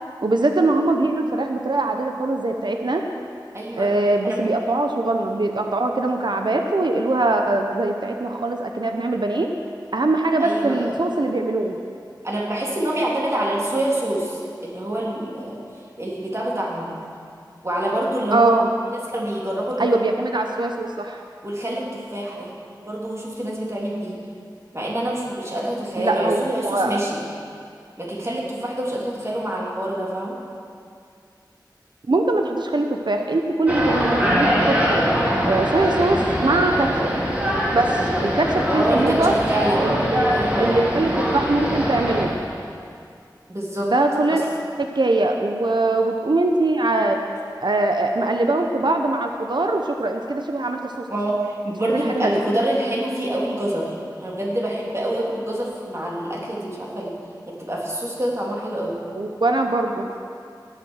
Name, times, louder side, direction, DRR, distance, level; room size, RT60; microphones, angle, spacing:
voice 1, 0.2-3.0 3.8-9.5 9.9-11.8 18.3-18.7 19.8-21.2 26.0-27.0 32.1-35.0 35.4-37.1 37.7-39.3 39.8-42.3 43.9-44.4 44.8-47.2 47.6-51.1 51.9-52.4 59.2-60.1, right 2 dB, 75° right, 3 dB, 0.8 m, -22 dB
voice 2, 3.5-3.9 4.2-4.4 10.4-10.9 12.2-15.6 16.0-17.0 17.6-18.5 19.1-20.0 21.4-22.5 22.8-24.2 24.7-27.2 28.0-30.4 38.7-40.0 40.3-40.8 43.5-43.9 44.2-44.4 51.1-57.2 57.5-59.0, right 1 dB, 35° right, -4 dB, 3.2 m, -26 dB
sound 1, 33.7-42.3, equal, 20° right, 3.0 m, -22 dB
18.0 x 7.6 x 6.5 m, 2.3 s
wide cardioid pair, 50°, 8 cm